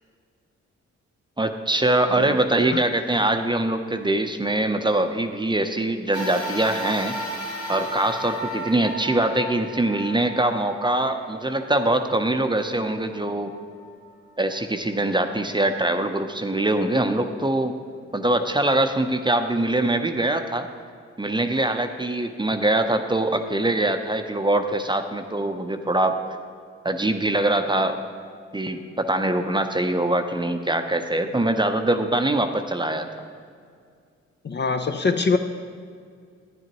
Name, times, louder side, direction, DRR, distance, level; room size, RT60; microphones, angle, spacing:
voice 1, 1.4-7.2 7.7-13.5 14.4-17.8 18.1-20.7 21.2-26.2 26.8-28.0 28.5-33.1, right 1 dB, 15° right, 6 dB, 0.7 m, -23 dB
sound 1, 6.1-14.7 15.3-15.4 16.6-16.7, equal, 65° left, 1.4 m, -35 dB
voice 2, 34.4-35.4, left 4 dB, 35° left, 7 dB, 0.6 m, -23 dB
11.0 x 9.9 x 3.0 m, 2.2 s
supercardioid pair, 50°, 30 cm